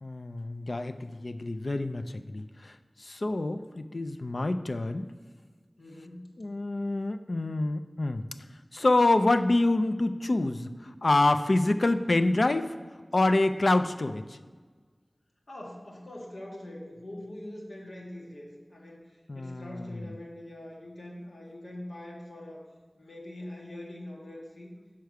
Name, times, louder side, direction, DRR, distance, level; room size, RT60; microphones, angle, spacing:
voice 1, 0.0-5.1 6.4-8.2 8.7-12.8 13.1-14.4 19.3-20.1, left 2 dB, 70° left, 9 dB, 0.4 m, -27 dB
voice 2, 5.8-6.3 11.7-11.8 15.5-22.7 22.9-24.7, left 1 dB, 90° left, -2 dB, 1.3 m, -43 dB
5.8 x 4.6 x 6.4 m, 1.5 s
wide cardioid pair, 40°, 0 cm